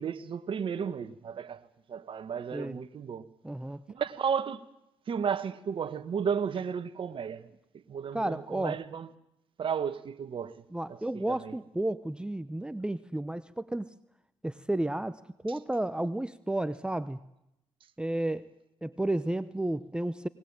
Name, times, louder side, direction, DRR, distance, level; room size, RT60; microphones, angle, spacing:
voice 1, 0.0-1.6 1.9-3.3 3.9-4.6 5.1-7.5 7.9-9.1 9.6-10.5 11.3-11.5, right 7 dB, 55° right, 1.5 m, -33 dB
voice 2, 3.4-3.8 8.1-8.8 10.7-13.9 14.4-17.2 18.0-18.5 18.8-20.3, right 1 dB, 10° right, 0.8 m, -32 dB
20.0 x 20.0 x 8.8 m
supercardioid pair, 70°, 11 cm